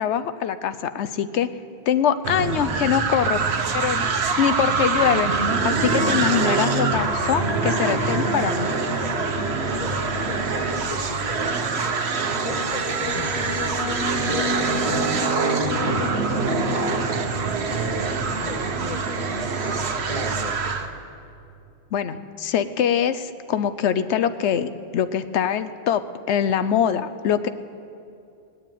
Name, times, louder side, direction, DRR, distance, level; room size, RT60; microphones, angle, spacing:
voice 1, 0.0-1.5 1.9-3.4 3.7-4.0 4.4-5.3 5.6-8.7 21.9-26.0 26.3-27.5, left 9 dB, 90° left, 12 dB, 1.0 m, -23 dB
sound 1, 2.2-20.9, right 4 dB, 70° right, 1.2 m, -24 dB
sound 2, 6.0-19.6, left 6 dB, 65° left, 0.9 m, -35 dB
voice 2, 8.9-9.3 9.6-12.0 12.3-13.5 13.9-15.4 15.7-17.1 17.6-21.0, left 4 dB, 40° left, 3 dB, 0.8 m, -36 dB
19.5 x 7.5 x 9.1 m, 2.6 s
omnidirectional pair, 1.1 m